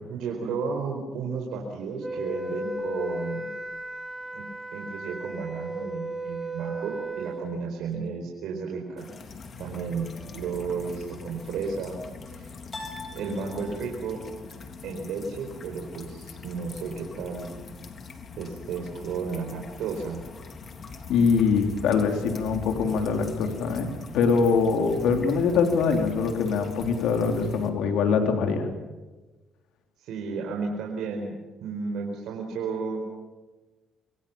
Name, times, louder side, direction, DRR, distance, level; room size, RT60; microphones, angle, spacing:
voice 1, 0.0-3.5 4.3-4.4 4.7-9.1 9.6-12.0 12.4-12.5 13.1-14.2 14.8-17.5 18.4-20.2 30.0-31.3 31.6-33.0, right 5 dB, 85° right, 0 dB, 4.5 m, -33 dB
Wind instrument woodwind instrument, 2.0-7.5, right 1 dB, 5° right, 4.0 m, -35 dB
sound 1, 9.0-27.7, left 4 dB, 50° left, 3.6 m, -42 dB
sound 2, 10.1-10.9 12.7-14.2, left 2 dB, 30° left, 8.0 m, -43 dB
voice 2, 21.1-28.7, left 5 dB, 85° left, 5 dB, 3.6 m, -23 dB
26.0 x 24.5 x 7.2 m, 1.2 s
cardioid pair, 90°, 0 cm